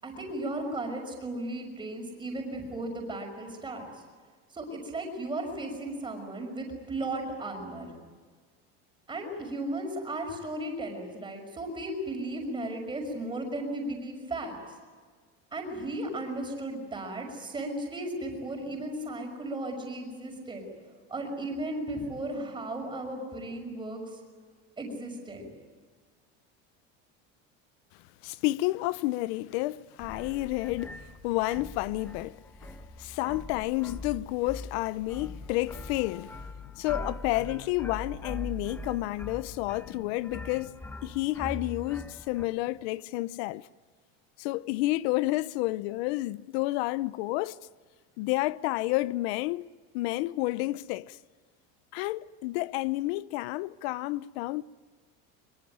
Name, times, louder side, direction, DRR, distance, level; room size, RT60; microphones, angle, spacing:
voice 1, 0.0-3.9 4.5-7.9 9.1-14.6 15.5-20.7 21.1-24.2 24.8-25.5, right 1 dB, 15° right, 5.9 m, -35 dB
voice 2, 28.2-32.7 33.0-36.4 36.7-43.7 44.4-47.6 48.2-49.7 49.9-51.2 51.9-54.6, left 18 dB, 80° left, 0.7 m, -30 dB
sound 1, 30.0-42.4, left 2 dB, 5° left, 1.2 m, -42 dB
24.0 x 23.0 x 9.3 m
cardioid pair, 155°, 31 cm